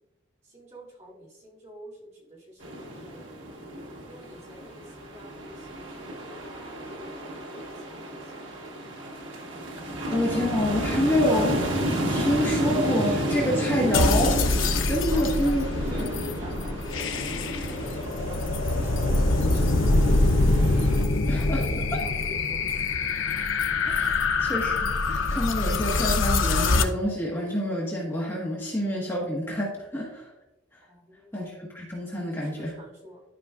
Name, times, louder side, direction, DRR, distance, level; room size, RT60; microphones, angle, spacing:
voice 1, 0.4-3.3 4.0-6.4 7.0-8.3 15.1-17.2 17.7-18.5 18.8-20.0 21.1-22.9 24.2-24.3 30.9-31.3 32.1-33.2, equal, 35° right, -7 dB, 2.5 m, -47 dB
sound 1, 2.6-21.0, equal, 75° right, 1.3 m, -32 dB
voice 2, 10.1-11.7 12.1-14.4 14.8-15.7 15.9-16.0 21.3-21.7 23.9-30.3 31.3-32.7, equal, 10° left, -5 dB, 1.3 m, -27 dB
sound 2, 13.9-26.8, left 3 dB, 80° left, 0.6 m, -24 dB
12.0 x 5.1 x 2.4 m, 0.97 s
head